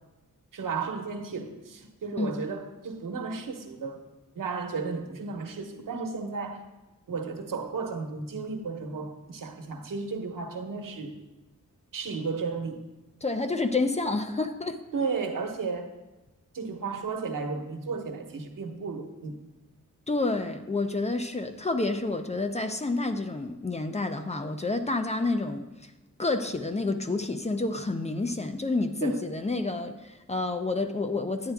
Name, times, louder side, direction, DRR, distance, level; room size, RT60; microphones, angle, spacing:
voice 1, 0.5-4.1 4.3-6.6 7.1-11.2 11.9-12.8 14.9-15.9 16.5-19.4 29.0-29.2, right 4 dB, 85° right, 4 dB, 1.1 m, -34 dB
voice 2, 13.2-14.8 20.1-25.6 26.2-31.5, left 3 dB, 20° left, 7 dB, 0.5 m, -29 dB
10.5 x 9.2 x 3.5 m, 1.1 s
wide cardioid pair, 160°, 32 cm